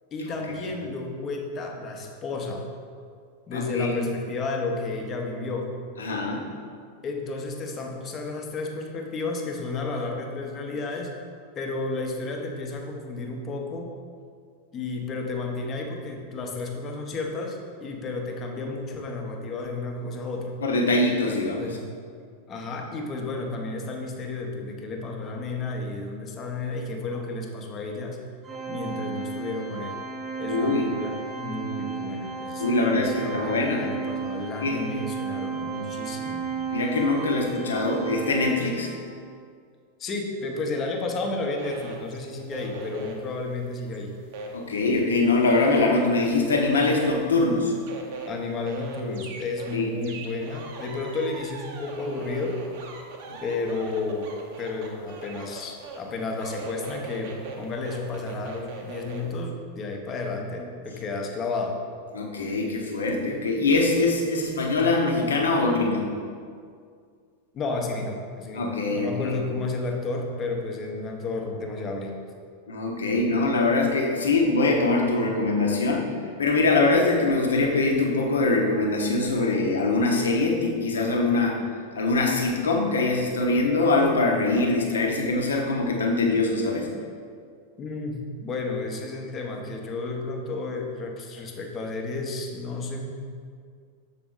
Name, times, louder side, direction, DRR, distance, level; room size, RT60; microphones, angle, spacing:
voice 1, 0.1-2.7 3.5-5.8 7.0-11.1 11.6-13.9 14.7-20.6 21.6-21.9 22.5-28.2 28.7-30.0 30.4-36.5 40.0-44.1 48.3-52.6 53.4-61.8 67.5-72.2 87.8-93.1, left 3 dB, 30° left, 2 dB, 0.8 m, -32 dB
voice 2, 3.5-4.0 6.0-6.5 20.6-21.7 30.5-30.9 32.6-33.8 34.6-34.9 36.7-38.9 44.5-47.7 49.7-49.9 53.3-53.4 62.1-66.0 68.5-69.4 72.7-76.1 76.4-81.6 81.9-86.9, left 3 dB, 70° left, 0 dB, 0.9 m, -23 dB
Organ, 28.4-39.2, right 5 dB, 20° right, 0.7 m, -33 dB
sound 1, 41.6-45.1 45.4-59.3, right 4 dB, 50° right, 0.8 m, -40 dB
6.9 x 4.2 x 3.7 m, 2.1 s
figure-of-eight pair, 90°, 0 cm